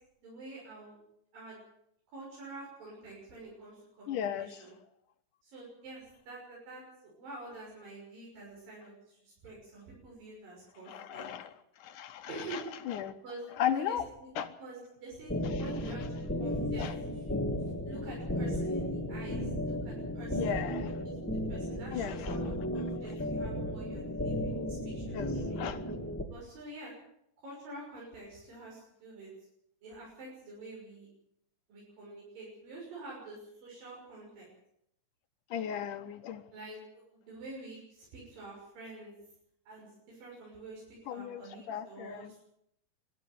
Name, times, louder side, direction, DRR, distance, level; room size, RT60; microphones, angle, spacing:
voice 1, 0.2-1.0 1.3-1.6 2.1-4.7 5.4-11.3 12.3-12.6 13.2-17.3 17.6-25.6 26.3-26.9 27.4-29.3 29.8-31.1 31.7-34.5 36.5-39.1 39.7-42.4, right 2 dB, 80° right, -4 dB, 8.1 m, -48 dB
voice 2, 4.1-4.5 10.9-11.5 11.8-12.6 12.9-13.1 13.6-14.0 14.4-14.5 16.8-16.9 20.4-20.9 21.9-22.4 25.1-25.3 25.6-25.8 35.5-36.4 41.1-41.4 41.7-42.4, left 9 dB, 70° left, 9 dB, 2.5 m, -35 dB
sound 1, 15.3-26.2, left 1 dB, 10° left, 0.8 m, -34 dB
21.0 x 13.0 x 9.5 m, 0.74 s
omnidirectional pair, 3.9 m